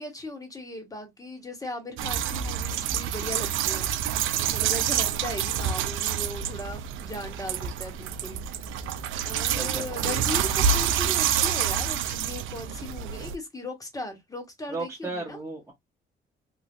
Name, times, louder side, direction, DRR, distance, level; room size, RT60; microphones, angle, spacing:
voice 1, 0.0-3.9 4.5-8.4 9.2-15.4, left 1 dB, 15° left, 1.3 m, -37 dB
sound 1, 2.0-13.3, right 8 dB, 80° right, 0.4 m, -27 dB
voice 2, 9.3-9.9 14.7-15.7, right 3 dB, 15° right, 1.0 m, -35 dB
3.2 x 2.4 x 2.5 m
cardioid pair, 90°, 20 cm